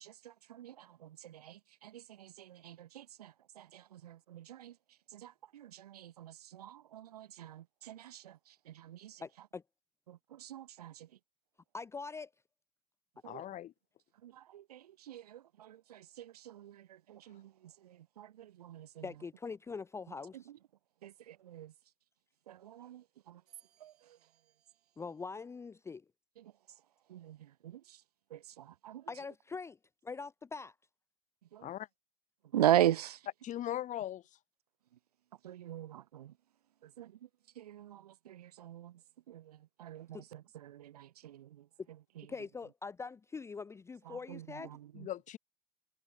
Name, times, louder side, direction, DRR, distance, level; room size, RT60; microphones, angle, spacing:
voice 1, 0.0-9.5 10.1-11.2 13.2-13.4 14.1-19.3 20.1-20.6 21.0-21.7 22.5-24.5 26.4-28.0 28.3-29.2 31.4-31.7 32.4-33.3 34.9-35.0 35.3-36.4 36.8-37.3 37.5-42.5 44.0-45.1, right 12 dB, 80° right, 3.8 m, -40 dB
voice 2, 9.2-9.6 11.7-12.3 19.0-20.4 25.0-26.0 29.1-29.8 30.0-30.7 42.3-44.7, left 4 dB, 15° left, 0.5 m, -43 dB
voice 3, 13.2-13.7 31.6-31.9 33.4-34.2 44.9-45.4, left 12 dB, 40° left, 2.7 m, -39 dB
hypercardioid pair, 90°, 20 cm